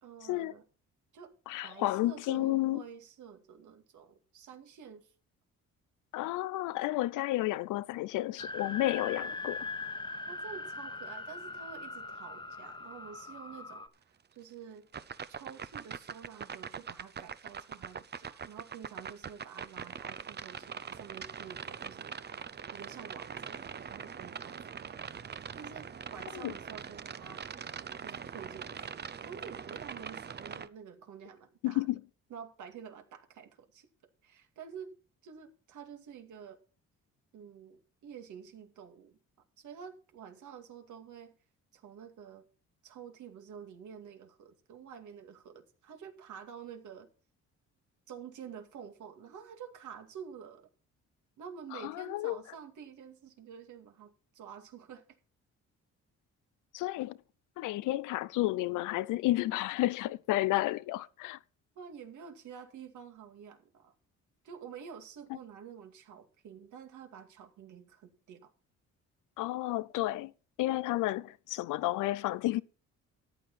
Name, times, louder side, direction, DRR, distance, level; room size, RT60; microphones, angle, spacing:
voice 1, 0.0-0.6 1.1-1.3 1.6-5.1 10.3-14.9 15.3-22.2 22.7-24.9 25.6-27.4 28.0-31.9 32.3-33.9 34.2-34.9 35.2-36.6 37.3-39.2 39.6-41.3 41.7-42.5 42.8-47.1 48.1-50.7 51.4-55.0 61.8-63.9 64.4-68.5, right 7 dB, 75° right, 2.4 m, -49 dB
voice 2, 1.5-2.8 6.1-9.6 26.3-26.5 31.6-32.0 51.7-52.4 56.7-57.2 57.6-61.4 69.4-70.3 70.6-72.6, left 17 dB, 90° left, 0.6 m, -31 dB
sound 1, 8.4-13.9, left 3 dB, 15° left, 1.2 m, -41 dB
sound 2, 14.9-30.7, right 7 dB, 35° right, 0.8 m, -43 dB
14.0 x 9.5 x 4.2 m
cardioid pair, 90°, 30 cm